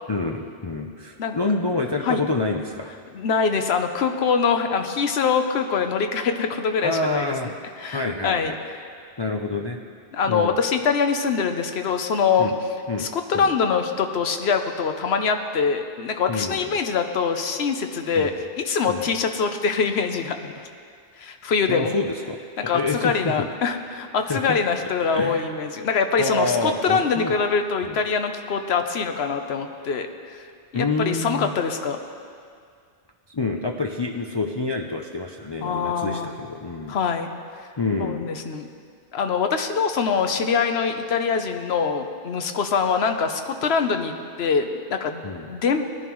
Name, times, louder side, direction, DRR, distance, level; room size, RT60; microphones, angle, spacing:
voice 1, 0.1-2.9 6.8-8.6 9.2-9.8 10.2-10.6 12.4-12.5 12.9-13.1 13.3-13.5 16.3-16.8 18.2-18.4 18.9-19.1 21.7-22.4 22.6-23.5 24.3-24.6 25.1-25.5 26.2-27.4 27.8-28.0 30.7-31.5 33.3-37.0 37.8-38.3 45.2-45.5, left 3 dB, 35° left, 1 dB, 0.4 m, -27 dB
voice 2, 3.1-7.5 7.8-8.5 10.1-12.5 13.0-18.3 18.6-20.5 21.2-22.0 22.7-30.4 30.7-32.0 35.6-36.3 36.9-37.3 38.0-38.7 39.1-44.1 44.4-45.8, left 5 dB, 75° left, 6 dB, 1.0 m, -24 dB
19.0 x 11.0 x 3.1 m, 2.2 s
omnidirectional pair, 1.1 m